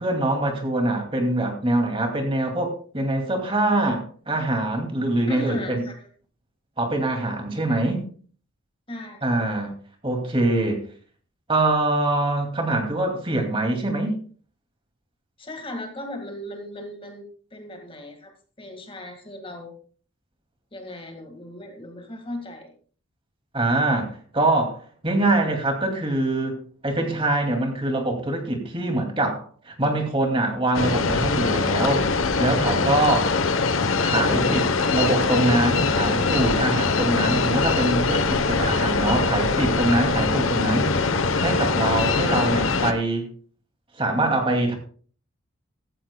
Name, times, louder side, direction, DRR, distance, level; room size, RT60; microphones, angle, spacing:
voice 1, 0.0-5.8 6.8-8.1 9.2-9.7 10.0-10.8 11.5-14.2 23.5-26.6 26.8-33.3 34.0-40.9 41.4-43.3 44.0-44.7, right 2 dB, 25° right, 3 dB, 2.5 m, -24 dB
voice 2, 5.3-5.9 8.9-9.2 15.4-17.2 17.5-18.3 18.6-19.8 20.7-22.7, left 1 dB, 25° left, 4 dB, 1.9 m, -37 dB
sound 1, 30.7-42.9, left 4 dB, 75° left, 1.0 m, -22 dB
15.5 x 14.0 x 2.3 m, 0.43 s
head